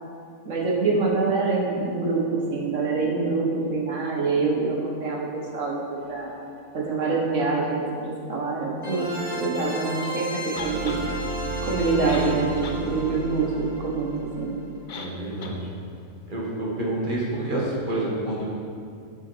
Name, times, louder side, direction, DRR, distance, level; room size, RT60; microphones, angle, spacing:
voice 1, 0.4-6.3 6.7-10.3 10.6-11.0 11.6-14.6, right 3 dB, 60° right, -2 dB, 1.6 m, -25 dB
sound 1, 6.0-6.1 8.8-14.7, right 1 dB, 5° right, 1.6 m, -32 dB
sound 2, 10.6-11.0 11.8-11.9 12.1-12.8 13.2-13.3 14.9-15.1 15.4-15.6, left 4 dB, 55° left, 0.5 m, -38 dB
voice 2, 14.9-15.6 16.3-18.4, right 1 dB, 35° right, -5 dB, 1.6 m, -28 dB
8.1 x 5.7 x 4.5 m, 2.3 s
omnidirectional pair, 1.5 m